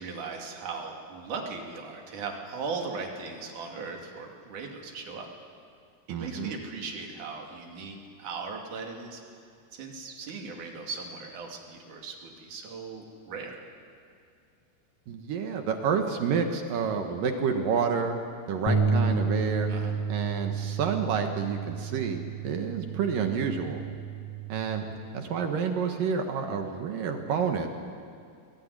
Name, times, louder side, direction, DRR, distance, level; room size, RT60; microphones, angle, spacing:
voice 1, 0.0-5.3 6.1-9.2 9.7-13.6 19.7-20.0, right 4 dB, 50° right, 1 dB, 3.5 m, -38 dB
voice 2, 6.1-6.5 15.1-19.7 20.1-23.8 24.5-24.9 25.1-27.7, right 6 dB, 65° right, 5 dB, 2.4 m, -29 dB
sound 1, 18.7-24.9, right 4 dB, 75° left, 1.5 m, -30 dB
22.5 x 20.5 x 9.8 m, 2.3 s
omnidirectional pair, 5.4 m